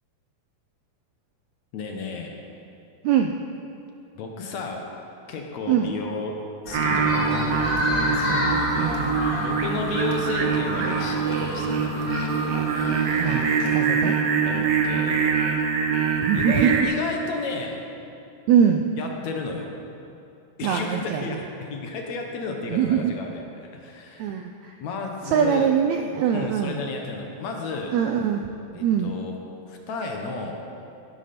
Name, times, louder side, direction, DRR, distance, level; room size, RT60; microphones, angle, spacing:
voice 1, 1.7-2.4 4.2-4.9 5.3-7.3 9.3-12.0 12.2-12.4 14.5-15.2 16.3-17.8 19.0-19.7 20.6-24.3 24.8-25.7 26.3-28.0 28.7-29.4 29.7-30.5, left 3 dB, 65° left, 2 dB, 2.2 m, -32 dB
voice 2, 3.0-3.4 5.7-5.9 8.1-9.2 13.2-14.2 16.2-16.7 18.5-18.9 20.6-21.4 22.7-23.1 24.2-24.7 25.3-26.8 27.9-29.1, right 8 dB, 80° right, 5 dB, 1.6 m, -23 dB
sound 1, 6.7-13.8, left 1 dB, 30° left, 1.0 m, -30 dB
Singing, 6.7-16.8, right 5 dB, 65° right, 1.8 m, -24 dB
15.0 x 12.0 x 4.3 m, 2.7 s
omnidirectional pair, 3.7 m